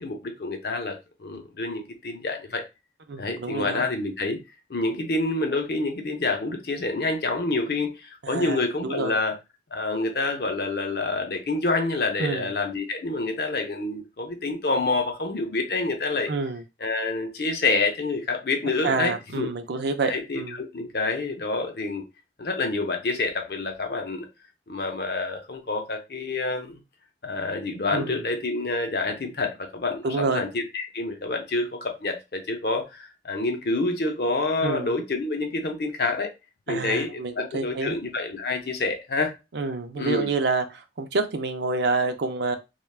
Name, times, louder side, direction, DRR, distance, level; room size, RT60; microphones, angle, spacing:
voice 1, 0.0-2.6 3.2-4.4 4.7-9.4 9.7-16.3 16.8-19.5 20.0-20.4 20.7-22.0 22.4-24.3 24.7-26.8 27.2-36.3 36.7-39.3 40.0-40.3, left 3 dB, 60° left, 0.6 m, -27 dB
voice 2, 3.1-3.8 8.2-9.2 12.2-12.5 16.3-16.6 18.8-20.6 27.9-28.2 30.0-30.4 34.6-35.0 36.7-37.9 39.5-42.6, right 4 dB, 70° right, 0.5 m, -28 dB
3.3 x 2.2 x 2.3 m
head